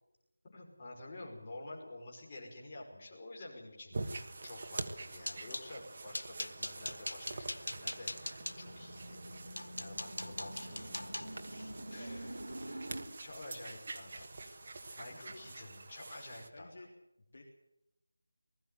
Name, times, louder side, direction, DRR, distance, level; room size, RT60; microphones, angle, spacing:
voice 1, 0.5-9.2 9.8-11.5 11.9-12.4 13.2-14.3 15.0-16.8, left 2 dB, 25° left, -3 dB, 5.6 m, -50 dB
sound 1, 3.9-16.5, right 3 dB, 35° right, 1.5 m, -46 dB
sound 2, 5.0-5.7 6.1-8.6 9.2-9.3 9.6-13.8 14.1-14.5 14.8-15.0 15.4-15.6, left 1 dB, 90° left, 1.5 m, -43 dB
sound 3, 7.5-13.1, right 1 dB, 70° right, 3.3 m, -47 dB
voice 2, 11.9-12.7 14.7-15.4 16.5-16.9 17.3-17.5, left 2 dB, 50° left, 1 dB, 3.4 m, -55 dB
20.0 x 14.5 x 9.3 m, 0.89 s
figure-of-eight pair, 175°, 0 cm